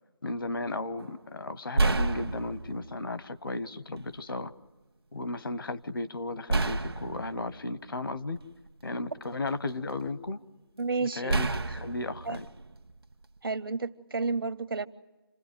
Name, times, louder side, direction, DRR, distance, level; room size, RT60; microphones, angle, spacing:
voice 1, 0.2-4.5 5.1-8.4 8.8-10.4 11.0-12.5, left 2 dB, 60° left, 1.0 m, -35 dB
sound 1, 1.0-1.2 1.8-3.0 4.0-4.1 6.5-8.7 9.2-10.1 11.3-13.4, right 3 dB, 85° right, 1.4 m, -30 dB
voice 2, 10.8-11.6 12.2-12.4 13.4-14.9, right 4 dB, 65° right, 0.8 m, -31 dB
28.0 x 17.5 x 9.4 m
figure-of-eight pair, 175°, 13 cm